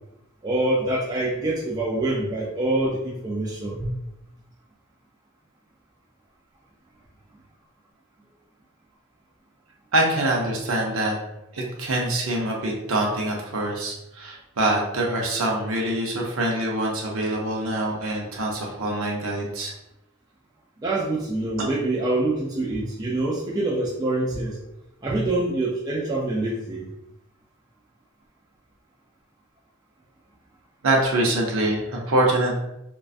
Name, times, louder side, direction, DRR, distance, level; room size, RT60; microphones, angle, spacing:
voice 1, 0.4-3.9 20.8-24.6 25.0-26.9, right 2 dB, 20° right, -5 dB, 0.3 m, -25 dB
voice 2, 9.9-11.2 11.5-19.7 30.8-32.5, right 1 dB, 75° right, -2 dB, 0.6 m, -24 dB
2.5 x 2.2 x 2.4 m, 0.87 s
head